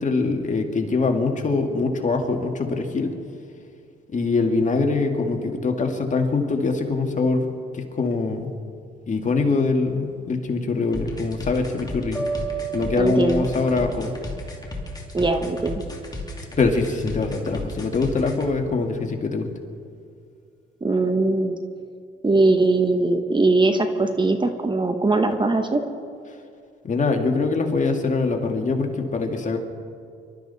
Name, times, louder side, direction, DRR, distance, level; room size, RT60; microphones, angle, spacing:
voice 1, 0.0-3.1 4.1-7.5 7.7-8.5 9.1-12.2 12.7-14.1 16.6-19.5 26.8-29.6, left 3 dB, 40° left, 3 dB, 2.0 m, -23 dB
sound 1, 10.9-18.5, left 2 dB, 20° left, 2.7 m, -34 dB
sound 2, 12.1-15.2, right 6 dB, ahead, 2.7 m, -33 dB
voice 2, 13.0-13.5 15.1-15.8 20.8-21.6 22.2-25.8, right 2 dB, 25° right, 6 dB, 1.2 m, -20 dB
26.0 x 13.0 x 4.1 m, 2.3 s
cardioid pair, 90°, 20 cm